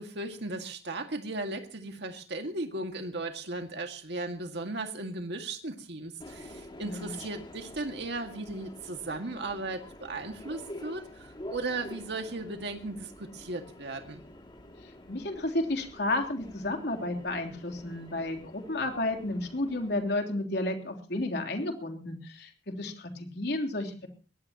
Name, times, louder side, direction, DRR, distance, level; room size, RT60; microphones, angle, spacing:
voice 1, 0.0-14.2, right 2 dB, 65° right, 4 dB, 2.0 m, -36 dB
Subway metro underground, 6.2-20.0, left 1 dB, 25° left, 2.5 m, -48 dB
voice 2, 6.8-7.1 15.1-22.5 22.8-24.1, left 2 dB, 60° left, 4 dB, 3.5 m, -32 dB
23.0 x 18.0 x 3.0 m, 0.38 s
head